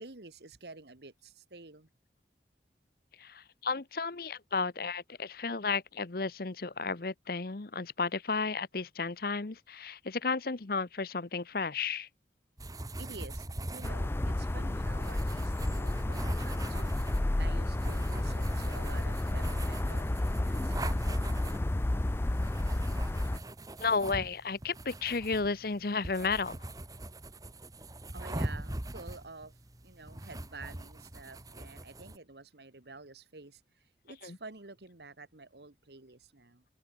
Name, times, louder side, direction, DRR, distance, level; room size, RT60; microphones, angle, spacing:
voice 1, 0.0-1.9 13.0-21.0 28.1-29.5 29.8-33.6 34.0-36.6, right 3 dB, 70° right, 1.8 m, -50 dB
voice 2, 3.2-12.1 23.8-26.7 34.2-34.4, left 4 dB, 55° left, 0.9 m, -33 dB
sound 1, 12.6-32.2, right 1 dB, 20° right, 1.2 m, -42 dB
sound 2, 13.8-23.4, left 1 dB, 15° left, 0.3 m, -31 dB
head